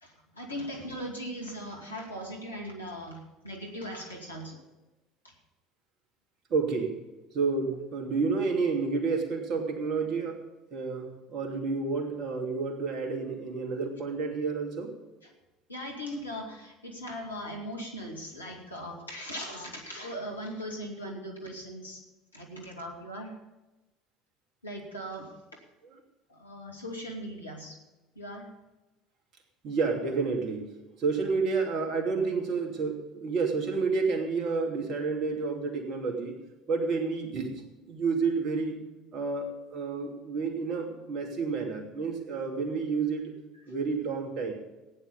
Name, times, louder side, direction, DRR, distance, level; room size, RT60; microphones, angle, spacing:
voice 1, 0.0-4.6 5.2-5.4 15.2-15.3 15.7-22.0 22.3-23.4 24.6-25.3 26.3-27.8 28.1-28.5, equal, 85° left, 0 dB, 2.3 m, -39 dB
voice 2, 6.5-7.0 7.3-10.4 10.7-14.9 29.6-36.4 36.7-37.6 37.9-38.8 39.1-43.3 43.7-44.5, right 4 dB, 45° right, 3 dB, 2.7 m, -30 dB
15.5 x 9.9 x 5.4 m, 1.1 s
figure-of-eight pair, 65°, 0 cm